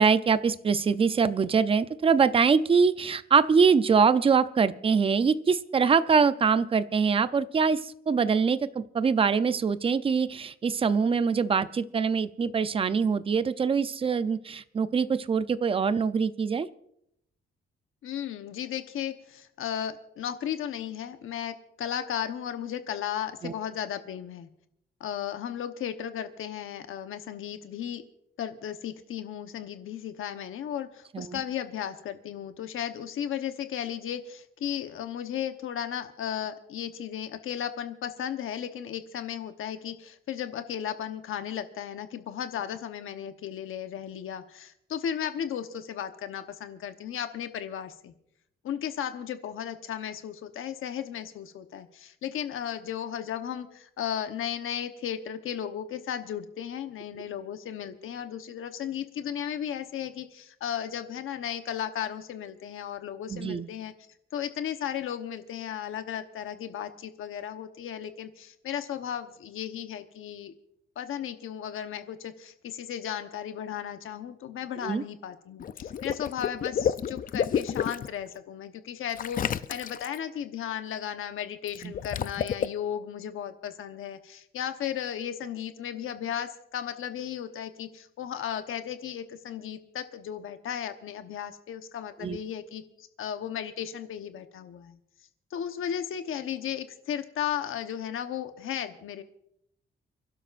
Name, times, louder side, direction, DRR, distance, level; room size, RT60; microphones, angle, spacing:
voice 1, 0.0-16.7 23.4-23.5 31.1-31.4 63.3-63.7 74.8-75.0 81.8-81.9 92.2-92.4, right 5 dB, 25° right, 13 dB, 0.5 m, -24 dB
voice 2, 18.0-24.5 25.0-28.0 28.4-48.1 48.6-63.9 64.3-70.5 71.0-95.0 95.5-99.2, left 9 dB, 80° left, 8 dB, 1.0 m, -35 dB
Water / Liquid, 75.6-78.1 79.2-80.2 81.7-82.7, left 8 dB, 45° left, 0.5 m, -30 dB
30.0 x 12.0 x 2.5 m, 0.74 s
wide cardioid pair, 165°, 21 cm